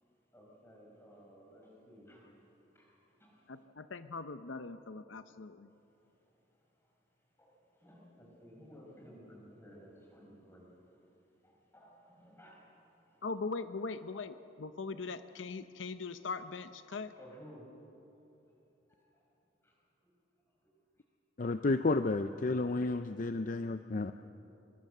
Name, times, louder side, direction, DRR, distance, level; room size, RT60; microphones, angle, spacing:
voice 1, 0.3-2.4 2.7-3.5 6.2-6.4 6.7-7.0 7.4-11.1 11.4-13.2 17.1-17.7 18.9-19.3 19.6-19.8 20.0-20.1 21.5-21.7, equal, 15° left, -2 dB, 5.4 m, -57 dB
voice 2, 3.5-5.7 13.2-17.1, left 4 dB, 85° left, 11 dB, 0.7 m, -41 dB
voice 3, 21.4-24.1, left 3 dB, 45° left, 9 dB, 0.5 m, -31 dB
23.5 x 23.5 x 6.8 m, 3.0 s
head